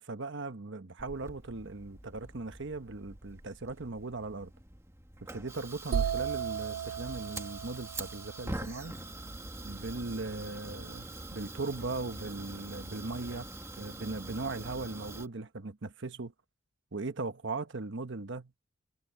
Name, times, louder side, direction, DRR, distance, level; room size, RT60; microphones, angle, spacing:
voice 1, 0.0-4.5 5.3-8.9 9.6-13.5 13.8-16.3 16.9-18.6, right 3 dB, 60° right, 1.1 m, -38 dB
Fire, 1.0-15.3, right 2 dB, 15° right, 1.5 m, -44 dB
sound 1, 5.9-9.7, right 7 dB, 85° right, 0.4 m, -36 dB
head